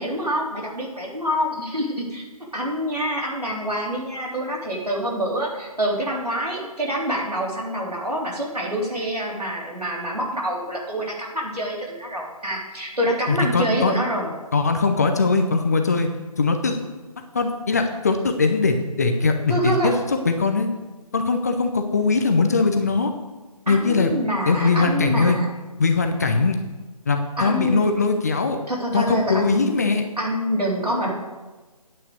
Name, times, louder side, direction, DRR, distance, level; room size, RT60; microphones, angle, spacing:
voice 1, 0.0-2.3 2.5-14.3 19.5-19.9 23.7-25.5 27.4-27.9 28.7-29.7 30.2-31.1, equal, 85° right, -3 dB, 3.6 m, -26 dB
voice 2, 13.3-13.9 14.5-16.1 16.4-16.8 17.3-19.9 20.3-20.7 21.1-23.1 23.7-24.1 24.5-25.4 25.8-26.6 27.1-28.6 28.9-30.0, left 4 dB, 25° left, 5 dB, 0.6 m, -21 dB
9.1 x 5.6 x 7.8 m, 1.2 s
figure-of-eight pair, 155°, 20 cm